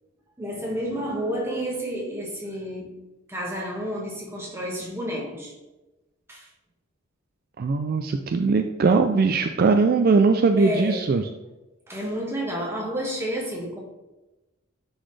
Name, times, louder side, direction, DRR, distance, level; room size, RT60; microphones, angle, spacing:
voice 1, 0.4-2.9 3.3-5.5 6.3-6.5 10.6-11.1 11.9-13.8, equal, 10° right, -3 dB, 1.5 m, -30 dB
voice 2, 7.6-11.2, right 4 dB, 45° right, 6 dB, 0.3 m, -20 dB
10.0 x 4.0 x 3.3 m, 1.0 s
head